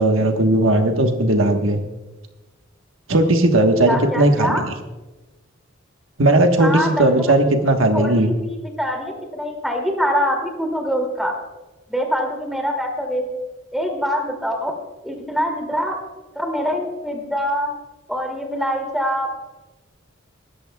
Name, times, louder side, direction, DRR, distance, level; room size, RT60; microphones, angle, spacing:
voice 1, 0.0-1.8 3.1-4.6 6.2-8.3, right 1 dB, 80° right, 5 dB, 1.3 m, -17 dB
voice 2, 3.8-4.6 6.6-7.3 7.9-11.3 11.9-13.3 13.7-14.7 15.0-16.0 16.4-17.7 18.1-19.4, equal, ahead, 2 dB, 2.4 m, -24 dB
20.0 x 13.5 x 2.3 m, 1.1 s
head